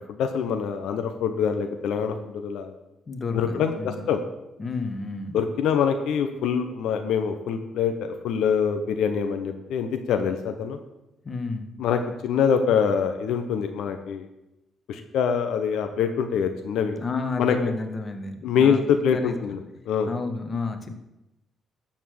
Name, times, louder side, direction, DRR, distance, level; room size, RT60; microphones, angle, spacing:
voice 1, 0.0-2.7 3.3-4.2 5.3-10.8 11.8-14.2 14.9-16.9 17.4-17.6 18.4-19.6 19.8-20.1, left 7 dB, 80° left, 6 dB, 1.0 m, -24 dB
voice 2, 3.1-4.1 4.6-5.4 11.2-11.7 17.0-18.8 19.1-19.6 20.1-20.9, left 3 dB, 35° left, 6 dB, 1.5 m, -31 dB
13.0 x 4.5 x 7.8 m, 0.91 s
cardioid pair, 90°, 0 cm